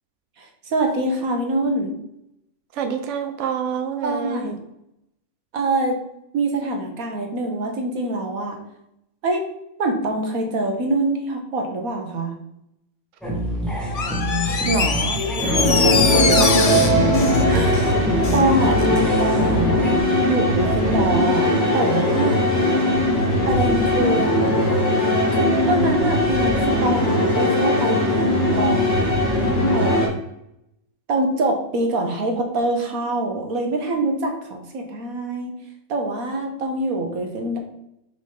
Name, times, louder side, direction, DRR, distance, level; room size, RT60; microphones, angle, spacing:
voice 1, 0.4-1.9 4.0-4.6 5.5-6.0 6.3-8.6 9.2-9.4 9.8-12.3 17.5-17.8 18.3-19.7 20.2-21.5 21.7-22.4 23.5-24.3 25.3-29.0 29.7-30.0 31.1-35.5 35.9-37.6, right 2 dB, 85° right, 2 dB, 1.6 m, -24 dB
voice 2, 2.7-4.5 14.7-17.0, right 5 dB, 65° right, 6 dB, 1.0 m, -27 dB
sound 1, 13.2-20.0, equal, ahead, 1.4 m, -26 dB
Door, 13.9-18.5 18.8-18.9, left 5 dB, 80° left, 0.3 m, -24 dB
sound 2, 15.4-30.1, left 1 dB, 45° left, 2.0 m, -19 dB
5.8 x 5.0 x 3.8 m, 0.82 s
omnidirectional pair, 1.5 m